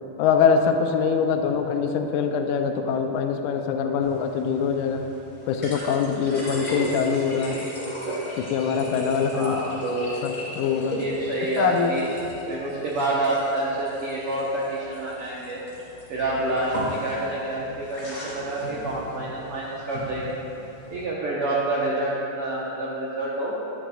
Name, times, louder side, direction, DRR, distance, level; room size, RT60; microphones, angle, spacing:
voice 1, 0.2-5.0 5.5-7.7 8.4-9.6 10.2-11.0 11.6-11.9, left 6 dB, 80° left, 5 dB, 1.9 m, -23 dB
sound 1, 4.0-21.0, equal, 30° left, 0.7 m, -36 dB
voice 2, 9.3-10.1 11.0-12.0 12.5-15.6 16.1-20.4 20.9-23.6, right 2 dB, 85° right, -5 dB, 1.2 m, -28 dB
11.0 x 10.0 x 2.3 m, 3.0 s
omnidirectional pair, 3.9 m